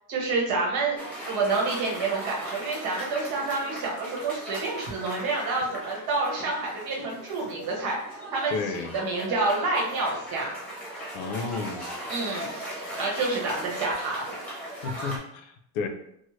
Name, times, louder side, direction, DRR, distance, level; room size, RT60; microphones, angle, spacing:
voice 1, 0.1-1.0 1.3-10.5 12.1-12.5 12.8-14.2, right 3 dB, 80° right, -2 dB, 1.1 m, -28 dB
Cheering / Applause, 1.0-15.2, right 1 dB, 5° left, 0.9 m, -38 dB
voice 2, 8.5-9.0 11.1-11.8 14.8-15.9, left 5 dB, 85° left, 6 dB, 0.6 m, -32 dB
3.1 x 2.1 x 3.0 m, 0.74 s
cardioid pair, 165°, 36 cm